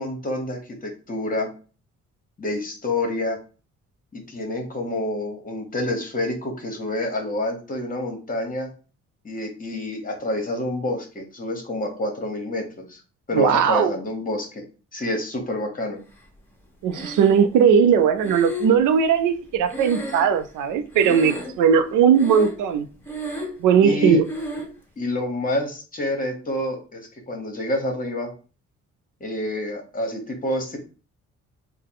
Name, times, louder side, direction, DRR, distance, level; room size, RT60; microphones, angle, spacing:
voice 1, 0.0-1.5 2.4-3.4 4.1-8.7 9.2-13.0 13.3-14.6 14.9-16.0 23.8-24.2 25.0-28.3 29.2-30.8, left 1 dB, 30° left, 1.2 m, -28 dB
voice 2, 13.3-13.9 16.8-22.9 23.6-24.3, right 7 dB, 90° right, 0.5 m, -18 dB
Breathing, 16.9-17.6 18.2-20.7 20.9-21.7 22.1-22.7 23.0-23.7 24.3-24.7, equal, 5° left, 1.1 m, -33 dB
3.7 x 2.2 x 3.7 m
cardioid pair, 90°, 30 cm